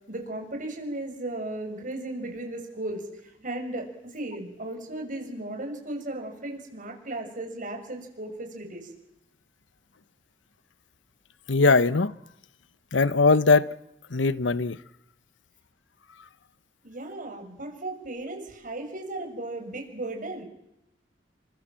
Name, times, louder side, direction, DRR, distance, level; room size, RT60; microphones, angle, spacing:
voice 1, 0.1-3.1 3.4-8.9 16.8-20.5, right 2 dB, 45° right, 6.9 m, -36 dB
voice 2, 11.5-12.2 12.9-13.7 14.1-14.8, left 3 dB, 85° left, 0.9 m, -20 dB
29.0 x 25.0 x 7.6 m
head